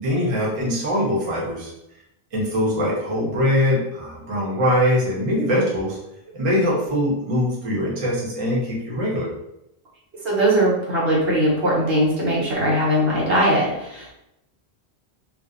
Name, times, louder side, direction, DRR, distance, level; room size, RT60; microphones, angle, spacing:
voice 1, 0.0-1.7 2.3-6.0 6.3-9.3, equal, 35° right, -5 dB, 0.7 m, -22 dB
voice 2, 10.2-14.1, right 1 dB, 75° right, -6 dB, 1.1 m, -20 dB
2.4 x 2.1 x 2.4 m, 0.83 s
omnidirectional pair, 1.1 m